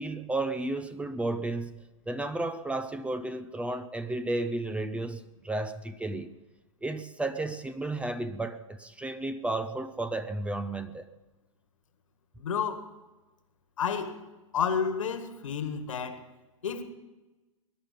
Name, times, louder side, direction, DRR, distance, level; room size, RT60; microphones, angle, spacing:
voice 1, 0.0-6.3 6.8-11.0, right 2 dB, 5° right, 0.7 m, -33 dB
voice 2, 12.4-12.9 13.8-14.2 14.5-16.2 16.6-16.8, left 7 dB, 70° left, 1.8 m, -30 dB
21.5 x 11.0 x 5.3 m
figure-of-eight pair, 100°, 17 cm